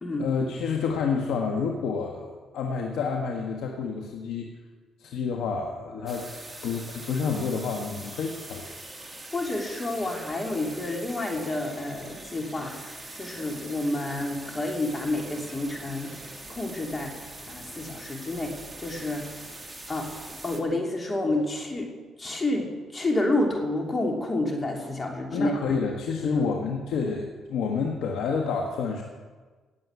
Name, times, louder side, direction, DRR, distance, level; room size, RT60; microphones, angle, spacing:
voice 1, 0.2-4.5 5.0-6.3 6.6-8.7 25.3-29.0, left 5 dB, 80° left, 1 dB, 1.5 m, -29 dB
sound 1, 6.1-20.6, right 2 dB, 10° right, 2.3 m, -43 dB
voice 2, 9.3-17.2 17.5-19.2 19.9-21.9 22.2-25.5 26.3-26.4, left 2 dB, 25° left, 1 dB, 2.9 m, -29 dB
18.0 x 7.6 x 8.3 m, 1.4 s
cardioid pair, 90°, 0 cm